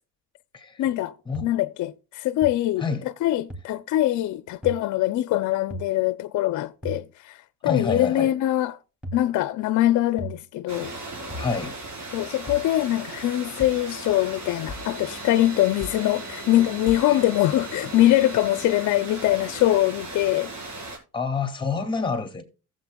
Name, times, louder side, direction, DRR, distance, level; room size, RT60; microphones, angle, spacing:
voice 1, 0.8-1.2 1.4-2.8 3.2-8.8 9.1-11.0 12.1-20.5, left 14 dB, 75° left, 0.5 m, -23 dB
sound 1, 1.3-1.4 2.4-2.5 3.5-3.6 4.6-4.8 5.7-5.9 6.8-7.0 7.9-8.1 9.0-9.2 10.2-10.4 11.3-11.5 12.5-12.7 13.6-13.8 14.7-14.9 15.8-16.0 16.9-17.1, equal, 5° right, 2.7 m, -35 dB
voice 2, 7.6-8.3 11.3-11.8 17.1-17.2 21.1-22.4, left 5 dB, 15° left, 2.4 m, -28 dB
sound 2, 10.7-21.0, right 2 dB, 65° right, 4.3 m, -37 dB
15.0 x 7.7 x 2.3 m
cardioid pair, 90°, 30 cm